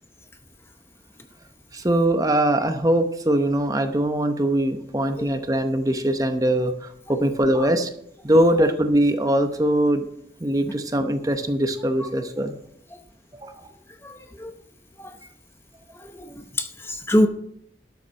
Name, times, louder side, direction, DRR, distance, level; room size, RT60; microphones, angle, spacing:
voice 1, 1.7-7.9 8.2-10.0 10.4-12.5 13.3-13.7, right 1 dB, 20° right, 7 dB, 0.8 m, -22 dB
voice 2, 14.0-14.5 15.0-15.1 15.9-17.3, equal, 15° left, 6 dB, 0.7 m, -25 dB
12.0 x 7.0 x 5.4 m, 0.72 s
head